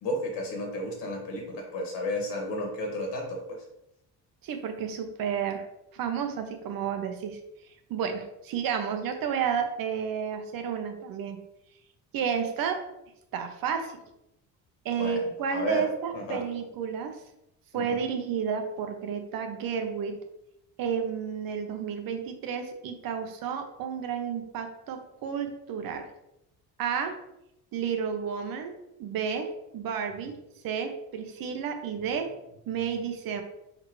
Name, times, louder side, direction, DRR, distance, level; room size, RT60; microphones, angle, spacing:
voice 1, 0.0-3.4 15.0-15.2 15.5-15.9 16.1-16.4 17.7-18.0, left 1 dB, 80° left, 0 dB, 2.1 m, -32 dB
voice 2, 4.4-5.7 5.9-7.4 7.9-11.4 12.1-12.8 13.3-13.9 14.8-17.2 17.7-20.2 20.8-26.1 26.8-27.2 27.7-28.7 29.0-30.4 30.6-32.3 32.7-33.4, right 7 dB, 55° right, 6 dB, 1.0 m, -31 dB
5.9 x 5.0 x 3.2 m, 0.83 s
cardioid pair, 165°, 41 cm